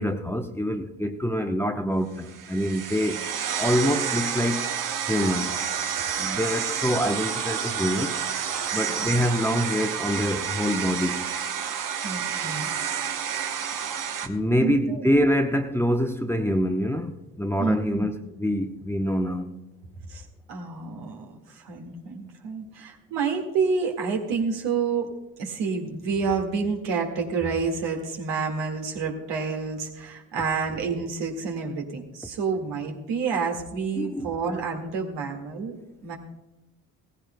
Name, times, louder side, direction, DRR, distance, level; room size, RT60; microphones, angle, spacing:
voice 1, 0.0-3.2 3.6-4.6 5.1-5.5 6.2-8.1 8.7-11.2 14.2-17.1 17.4-19.5 34.0-34.3, equal, 5° left, 5 dB, 0.9 m, -25 dB
sound 1, 2.2-14.3, right 8 dB, 45° right, 1.0 m, -29 dB
voice 2, 12.0-12.7 14.6-15.1 17.6-18.1 20.1-20.2 20.5-25.1 25.4-35.7 36.0-36.2, right 5 dB, 70° right, 1 dB, 2.0 m, -29 dB
17.0 x 15.0 x 2.2 m, 0.96 s
hypercardioid pair, 55°, 44 cm